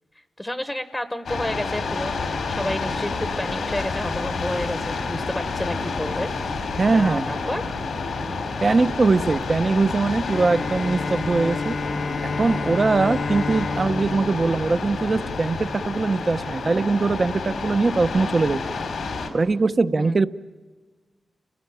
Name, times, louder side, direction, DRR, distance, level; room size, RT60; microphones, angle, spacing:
voice 1, 0.4-6.3 6.9-7.8 20.0-20.1, left 1 dB, 10° left, 10 dB, 1.0 m, -30 dB
sound 1, 1.3-19.3, left 4 dB, 90° left, 3.4 m, -29 dB
voice 2, 6.8-7.3 8.6-11.8 12.2-18.6 19.3-20.3, right 3 dB, 40° right, 13 dB, 0.8 m, -21 dB
Bowed string instrument, 10.2-15.7, left 4 dB, 45° left, 0.7 m, -31 dB
30.0 x 19.0 x 9.3 m, 1.3 s
wide cardioid pair, 120°, 0 cm